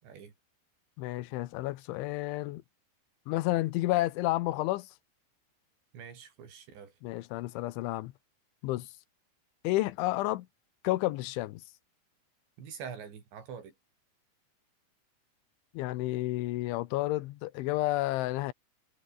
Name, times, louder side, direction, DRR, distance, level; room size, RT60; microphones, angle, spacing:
voice 1, 0.0-0.3 5.9-6.9 12.6-13.7, right 7 dB, 70° right, 6.5 m, -45 dB
voice 2, 1.0-2.6 3.3-4.9 7.0-8.1 8.6-8.9 9.6-10.5 10.8-11.6 15.7-18.5, left 18 dB, 90° left, 3.4 m, -31 dB
omnidirectional pair, 5.4 m